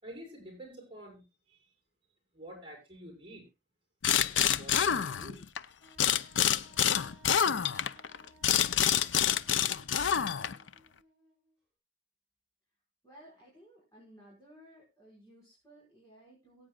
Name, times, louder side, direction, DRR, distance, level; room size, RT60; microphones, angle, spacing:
voice 1, 0.0-1.6 2.3-3.4 4.3-5.4, equal, 30° right, 5.9 m, -49 dB
sound 1, 4.0-5.6 6.0-10.7, left 9 dB, 90° left, 0.6 m, -27 dB
Wind instrument woodwind instrument, 5.8-11.6, right 1 dB, 5° right, 7.0 m, -62 dB
voice 2, 13.0-16.7, right 1 dB, 20° left, 5.6 m, -57 dB
22.5 x 8.8 x 2.3 m
head